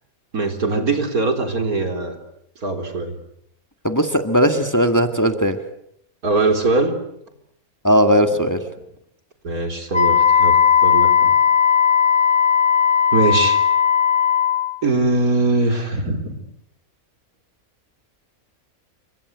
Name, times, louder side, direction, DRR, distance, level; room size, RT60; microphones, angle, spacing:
voice 1, 0.3-2.2 2.6-3.1 6.2-7.0 9.4-11.3 13.1-13.6 14.8-16.4, right 2 dB, 85° right, 5 dB, 4.2 m, -21 dB
voice 2, 3.8-5.6 7.8-8.7, equal, 10° left, 6 dB, 1.9 m, -17 dB
Wind instrument woodwind instrument, 9.9-14.7, left 8 dB, 25° right, 2.3 m, -16 dB
29.0 x 25.0 x 8.0 m, 0.74 s
omnidirectional pair, 1.5 m